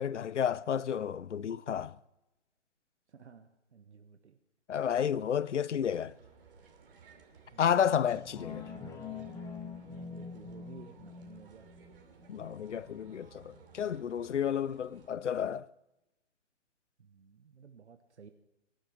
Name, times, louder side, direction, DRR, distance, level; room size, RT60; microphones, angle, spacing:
voice 1, 0.0-2.0 4.7-6.1 7.6-8.7 12.3-15.7, left 8 dB, 75° left, 0.7 m, -31 dB
voice 2, 3.1-4.4 7.5-7.7 9.8-9.9 10.1-11.7 17.0-18.3, right 6 dB, 70° right, 1.2 m, -54 dB
sound 1, 5.8-15.1, right 5 dB, 50° right, 2.9 m, -58 dB
sound 2, 8.1-13.1 13.5-13.6, left 5 dB, 10° left, 1.5 m, -45 dB
23.5 x 12.0 x 4.6 m
figure-of-eight pair, 140°, 36 cm